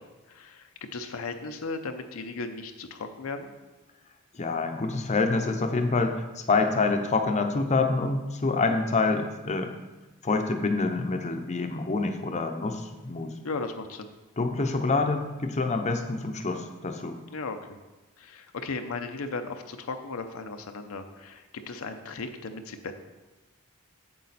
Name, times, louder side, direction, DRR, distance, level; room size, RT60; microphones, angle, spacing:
voice 1, 0.0-3.5 13.4-14.1 17.3-17.8 18.2-22.9, left 3 dB, 70° left, 6 dB, 0.6 m, -36 dB
voice 2, 4.3-9.7 10.2-13.3 14.4-17.2, left 3 dB, 30° left, 5 dB, 0.7 m, -26 dB
8.5 x 7.4 x 4.1 m, 1.1 s
head